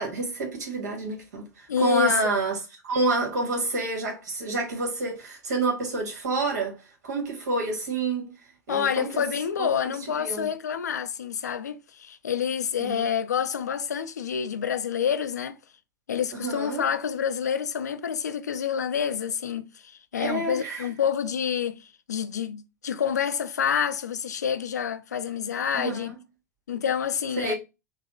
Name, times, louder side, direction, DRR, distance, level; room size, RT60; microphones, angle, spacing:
voice 1, 0.0-8.3 8.7-9.2 9.6-10.5 12.8-13.1 16.3-16.8 20.1-20.9 25.7-26.1 27.4-27.6, right 3 dB, 75° right, 1.5 m, -29 dB
voice 2, 1.7-2.1 8.7-15.6 16.1-26.1 26.7-27.5, left 8 dB, 80° left, 0.4 m, -28 dB
3.9 x 2.2 x 3.0 m
figure-of-eight pair, 80°, 9 cm